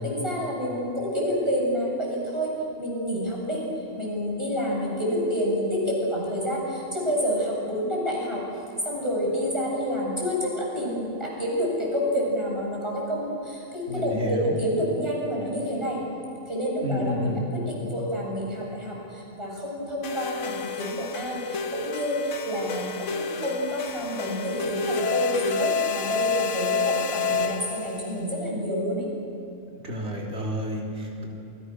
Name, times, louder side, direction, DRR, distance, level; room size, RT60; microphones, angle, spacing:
voice 1, 0.0-3.6 4.0-8.4 8.8-16.0 16.5-29.1, equal, 20° right, -3 dB, 7.9 m, -28 dB
voice 2, 13.9-14.6 16.8-17.4 29.8-31.3, left 1 dB, 60° right, -2 dB, 3.9 m, -30 dB
sound 1, 20.0-28.1, left 5 dB, 70° left, 1.4 m, -29 dB
29.0 x 24.5 x 6.5 m, 2.7 s
omnidirectional pair, 1.3 m